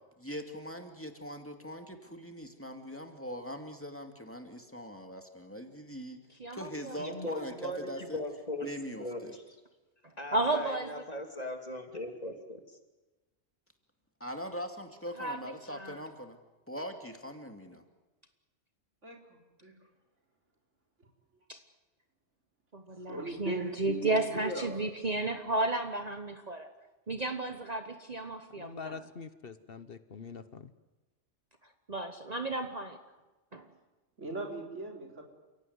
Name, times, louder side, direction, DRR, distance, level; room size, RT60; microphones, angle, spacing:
voice 1, 0.2-6.2 6.5-8.2 8.6-9.4 14.2-16.4 16.7-17.8, equal, 10° left, 4 dB, 2.4 m, -41 dB
voice 2, 6.4-7.0 10.3-10.9 15.2-15.4 15.7-16.0 21.5-21.6 22.7-26.7 27.1-28.9 31.9-33.0 33.5-33.7, right 2 dB, 35° right, 6 dB, 1.3 m, -33 dB
voice 3, 7.0-8.7 9.0-9.4 10.2-12.6, left 1 dB, 35° left, 4 dB, 3.0 m, -39 dB
voice 4, 19.0-19.7 23.1-24.9 25.2-25.3 34.2-35.2, right 2 dB, 85° right, 0 dB, 4.5 m, -39 dB
voice 5, 28.6-30.7, left 5 dB, 55° left, 12 dB, 1.2 m, -44 dB
29.5 x 17.0 x 9.6 m, 1.1 s
omnidirectional pair, 1.2 m